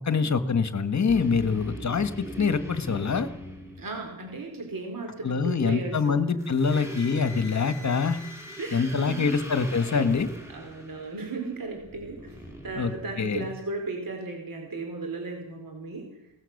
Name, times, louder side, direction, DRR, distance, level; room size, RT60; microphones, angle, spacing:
voice 1, 0.0-3.3 5.2-8.2 8.7-10.3 12.7-13.5, left 5 dB, 35° left, 11 dB, 1.5 m, -25 dB
sound 1, 1.1-4.4 6.4-13.7, equal, 5° right, 5.3 m, -42 dB
voice 2, 3.8-6.2 6.7-6.8 8.6-9.3 10.5-12.4 12.6-16.1, right 3 dB, 45° right, 3 dB, 4.2 m, -35 dB
22.0 x 18.0 x 6.6 m, 0.86 s
wide cardioid pair, 150°, 48 cm